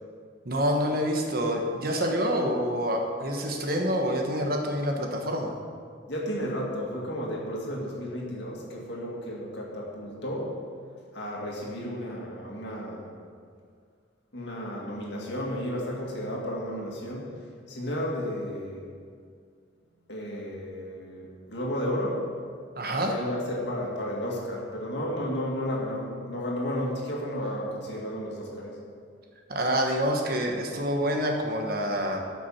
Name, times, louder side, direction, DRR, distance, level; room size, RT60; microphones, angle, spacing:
voice 1, 0.4-5.6 22.8-23.2 29.5-32.2, equal, 50° right, 2 dB, 1.3 m, -27 dB
voice 2, 6.1-10.6 11.1-13.1 14.3-17.3 17.7-18.9 20.1-22.3 23.1-28.8, equal, 65° left, -2 dB, 2.3 m, -33 dB
13.5 x 6.1 x 5.7 m, 2.1 s
head